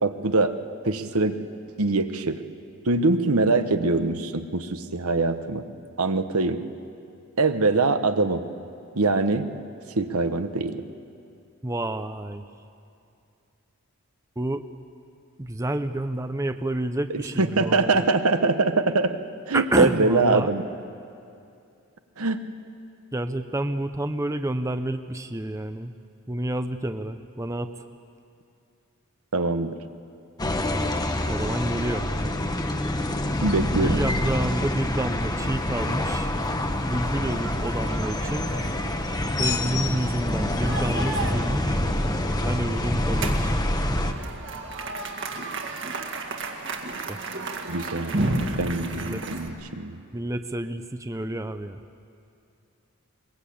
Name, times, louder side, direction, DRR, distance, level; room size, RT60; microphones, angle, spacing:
voice 1, 0.0-0.5 0.8-1.4 1.8-2.4 2.8-5.6 6.0-6.6 7.4-8.4 8.9-9.4 10.0-10.8 17.1-19.2 19.5-20.6 22.2-22.4 29.3-29.8 33.4-34.0 47.7-48.2 48.6-50.0, right 3 dB, 80° right, 8 dB, 1.2 m, -23 dB
voice 2, 11.6-12.4 14.4-14.7 15.4-18.0 19.5-20.5 23.1-25.9 26.3-27.8 31.3-32.1 33.8-36.3 36.8-38.5 39.4-41.8 42.4-43.6 47.1-47.2 48.9-49.2 50.1-51.8, right 1 dB, 15° right, 9 dB, 0.6 m, -29 dB
sound 1, 30.4-44.1, left 1 dB, 15° left, 1.0 m, -26 dB
sound 2, 35.3-49.5, right 2 dB, 55° right, 2.1 m, -34 dB
23.0 x 21.5 x 8.6 m, 2.6 s
head